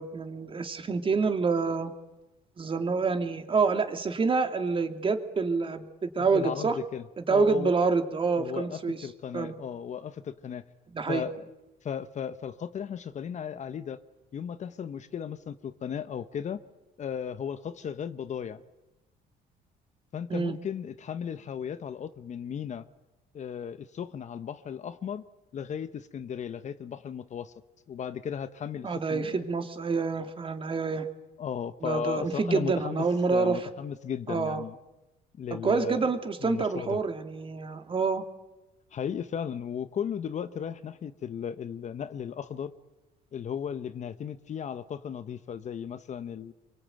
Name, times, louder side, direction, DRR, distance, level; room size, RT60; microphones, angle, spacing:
voice 1, 0.0-1.9 2.6-6.8 7.2-9.0 9.3-9.5 10.9-11.2 20.3-20.6 28.8-31.1 31.8-33.7 34.3-34.6 35.6-38.2, right 4 dB, 30° right, 6 dB, 2.5 m, -27 dB
voice 2, 6.2-7.7 8.4-10.6 11.1-11.5 11.8-14.0 14.3-16.6 17.0-18.6 20.1-22.8 23.3-25.2 25.5-27.5 27.9-29.5 31.4-34.8 35.4-36.1 36.4-37.0 38.9-42.7 43.3-46.5, left 8 dB, 45° left, 12 dB, 1.1 m, -36 dB
26.0 x 24.0 x 9.1 m, 1.0 s
cardioid pair, 110°, 17 cm